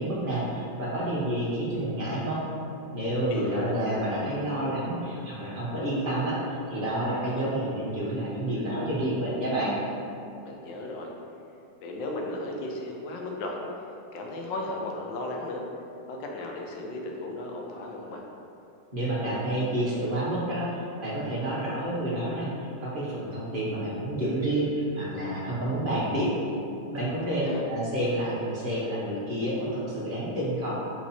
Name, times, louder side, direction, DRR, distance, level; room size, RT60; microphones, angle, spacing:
voice 1, 0.0-2.4 2.9-6.3 6.7-9.8 18.9-26.3 26.9-30.7, right 1 dB, 40° right, -8 dB, 0.8 m, -29 dB
voice 2, 3.3-3.7 10.4-11.1 11.8-13.6 14.1-15.6 16.1-18.3 27.3-27.6, left 2 dB, 90° left, 0 dB, 1.3 m, -35 dB
4.5 x 2.8 x 4.1 m, 2.7 s
omnidirectional pair, 1.9 m